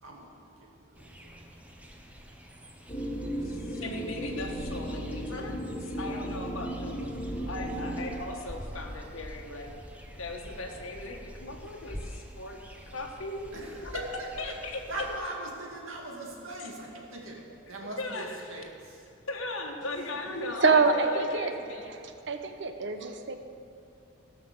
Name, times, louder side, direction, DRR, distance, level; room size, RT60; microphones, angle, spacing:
voice 1, 0.0-1.6 3.3-3.7 13.5-14.5 14.9-17.4 17.7-19.0, right 1 dB, 80° right, -1 dB, 2.4 m, -41 dB
sound 1, 0.9-15.2, equal, 5° right, 0.9 m, -46 dB
sound 2, 2.9-8.1, equal, 20° left, 1.7 m, -35 dB
voice 2, 3.4-7.0 7.5-9.8 10.2-12.6 12.9-13.9 14.4-14.8 18.0-18.6 19.3-21.9, left 2 dB, 80° left, 1 dB, 1.2 m, -38 dB
voice 3, 20.4-21.5 22.3-23.4, right 4 dB, 60° right, 7 dB, 0.9 m, -25 dB
17.0 x 5.9 x 6.9 m, 2.5 s
head